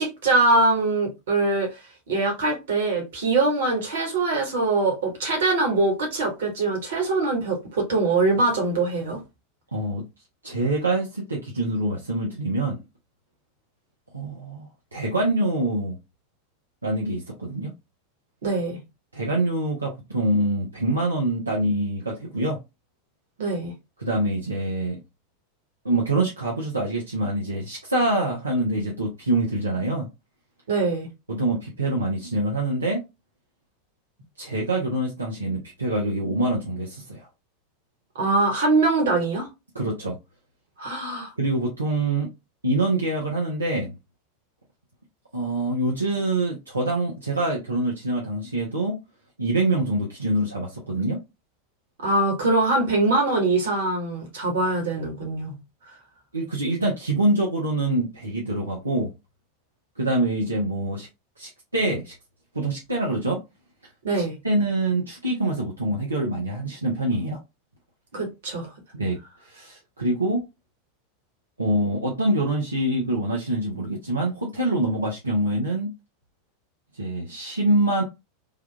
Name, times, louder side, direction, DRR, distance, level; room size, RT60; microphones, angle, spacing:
voice 1, 0.0-1.8 2.1-9.2 18.4-18.8 23.4-23.7 30.7-31.1 38.1-39.5 40.8-41.3 52.0-55.6 64.0-64.4 68.1-68.7, right 2 dB, 65° right, 1.3 m, -23 dB
voice 2, 9.7-10.0 10.4-12.8 14.1-16.0 16.8-17.7 19.1-22.6 24.0-25.0 25.8-30.1 31.3-33.0 34.4-37.3 39.7-40.2 41.4-42.3 42.6-43.9 45.3-49.0 49.4-51.2 56.3-59.1 60.0-61.1 61.4-62.1 62.5-63.4 64.1-67.4 68.9-69.2 69.4-70.4 71.6-75.9 76.9-78.0, right 1 dB, 90° right, 0.7 m, -25 dB
3.4 x 2.3 x 2.3 m
figure-of-eight pair, 90°, 0 cm